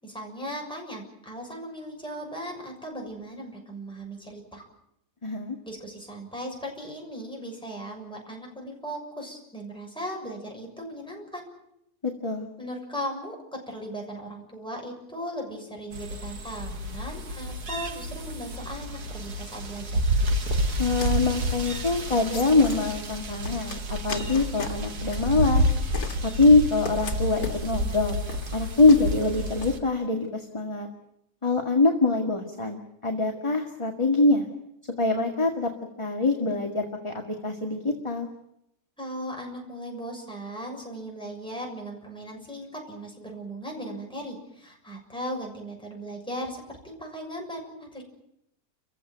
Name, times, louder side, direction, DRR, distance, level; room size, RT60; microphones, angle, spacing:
voice 1, 0.0-4.6 5.6-11.5 12.6-20.0 39.0-48.0, equal, 5° left, -1 dB, 6.8 m, -37 dB
voice 2, 5.2-5.6 12.0-12.5 20.8-25.7 26.2-28.2 28.5-30.9 31.4-34.5 35.0-35.7 36.0-38.3, left 3 dB, 20° left, 2 dB, 2.0 m, -24 dB
sound 1, 15.9-29.8, equal, 80° right, 2.4 m, -29 dB
sound 2, 20.5-29.7, left 3 dB, 70° left, 2.5 m, -39 dB
30.0 x 16.0 x 9.2 m, 0.80 s
omnidirectional pair, 1.7 m